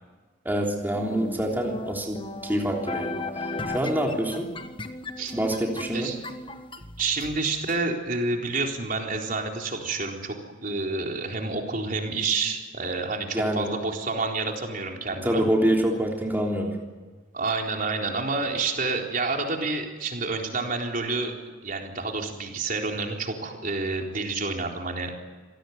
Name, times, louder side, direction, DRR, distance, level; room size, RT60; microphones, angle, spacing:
voice 1, 0.4-3.2 3.7-4.5 5.3-6.1 13.3-13.7 15.2-16.8, right 1 dB, 10° right, 0 dB, 3.4 m, -26 dB
sound 1, 1.0-7.8, left 2 dB, 25° left, 1.5 m, -36 dB
voice 2, 7.0-15.4 17.3-21.3 21.6-25.1, right 3 dB, 45° right, 1 dB, 4.0 m, -29 dB
26.5 x 18.5 x 9.5 m, 1.3 s
head